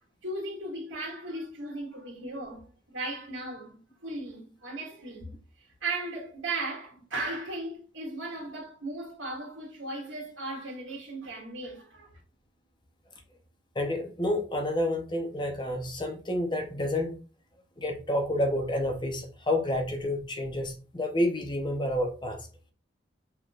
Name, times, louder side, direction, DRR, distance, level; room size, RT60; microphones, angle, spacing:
voice 1, 0.2-5.3 5.8-12.2, right 2 dB, 75° right, 2.2 m, -37 dB
voice 2, 13.7-17.1 17.8-22.5, left 1 dB, 25° left, 0.8 m, -29 dB
5.8 x 3.6 x 2.4 m
head